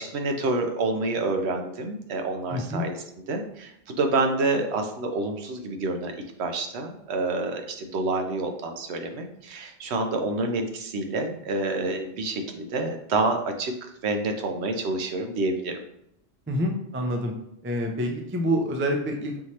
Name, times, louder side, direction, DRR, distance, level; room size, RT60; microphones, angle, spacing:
voice 1, 0.0-3.0 3.3-6.1 6.4-13.7 14.0-15.8, right 2 dB, 70° right, 5 dB, 0.9 m, -28 dB
voice 2, 2.5-2.9 16.5-17.3 17.6-19.4, equal, 20° right, 2 dB, 0.3 m, -27 dB
5.6 x 3.1 x 2.8 m, 0.75 s
omnidirectional pair, 1.2 m